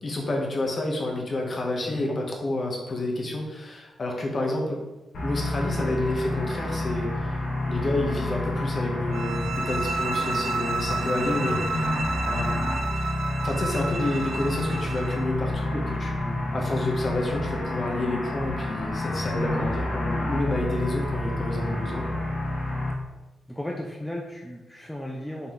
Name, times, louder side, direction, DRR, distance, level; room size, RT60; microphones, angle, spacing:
voice 1, 0.0-4.8 5.2-7.4 7.7-11.9 12.2-12.6 13.4-22.2, left 2 dB, 30° left, 0 dB, 1.1 m, -29 dB
voice 2, 1.8-2.2 23.5-25.5, left 1 dB, 5° left, -1 dB, 0.5 m, -35 dB
sound 1, 5.1-22.9, left 1 dB, 65° left, 1.5 m, -29 dB
sound 2, 9.1-15.3, right 4 dB, 75° right, 0.6 m, -31 dB
5.5 x 4.6 x 3.8 m, 1.1 s
wide cardioid pair, 165°, 0 cm